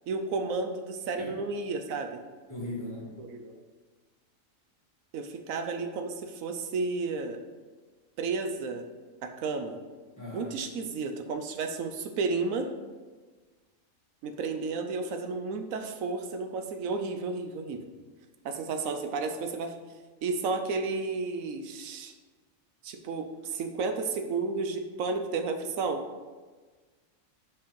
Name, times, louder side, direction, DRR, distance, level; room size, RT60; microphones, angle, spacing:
voice 1, 0.1-2.2 3.2-3.6 5.1-7.4 8.2-8.8 9.2-9.8 10.3-12.7 14.2-17.8 18.4-19.7 20.2-22.1 22.8-26.0, right 4 dB, 80° right, 6 dB, 1.0 m, -32 dB
voice 2, 2.5-3.2 10.2-10.5, left 1 dB, 15° left, -7 dB, 1.9 m, -38 dB
5.2 x 4.7 x 5.1 m, 1.4 s
omnidirectional pair, 1.4 m